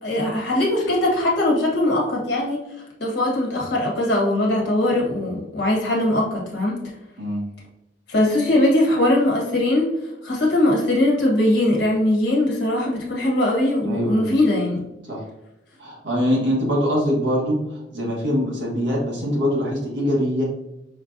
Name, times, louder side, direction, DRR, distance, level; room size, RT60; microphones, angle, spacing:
voice 1, 0.0-2.6 3.0-6.8 8.1-9.9 10.2-14.8, left 1 dB, 60° left, -2 dB, 1.3 m, -20 dB
voice 2, 13.8-14.3 15.0-15.2 15.8-20.4, equal, 65° right, -4 dB, 1.2 m, -23 dB
5.6 x 2.3 x 2.6 m, 0.91 s
head